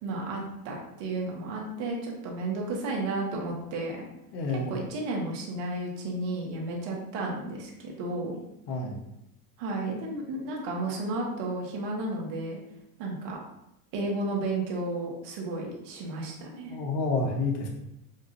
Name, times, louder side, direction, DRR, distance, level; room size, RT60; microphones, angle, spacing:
voice 1, 0.0-4.1 4.7-8.4 9.6-12.6 13.0-13.4 13.9-16.7, right 2 dB, 65° right, -2 dB, 1.6 m, -33 dB
voice 2, 4.3-4.7 8.7-9.0 16.7-17.7, left 3 dB, 60° left, 1 dB, 1.2 m, -29 dB
7.1 x 2.6 x 2.6 m, 0.84 s
hypercardioid pair, 90°, 47 cm